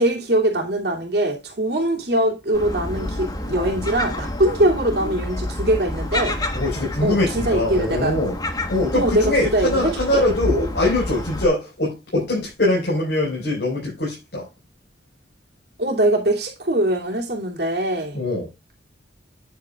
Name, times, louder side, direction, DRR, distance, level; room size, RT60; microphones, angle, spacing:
voice 1, 0.0-6.4 7.0-8.1 8.9-10.2 15.8-18.2, right 1 dB, 60° right, 2.6 m, -22 dB
Gull seagull, 2.5-11.5, left 1 dB, 20° left, 1.2 m, -28 dB
voice 2, 6.5-8.4 8.7-14.5 18.1-18.5, left 1 dB, 65° left, 4.8 m, -22 dB
9.3 x 8.2 x 2.4 m
head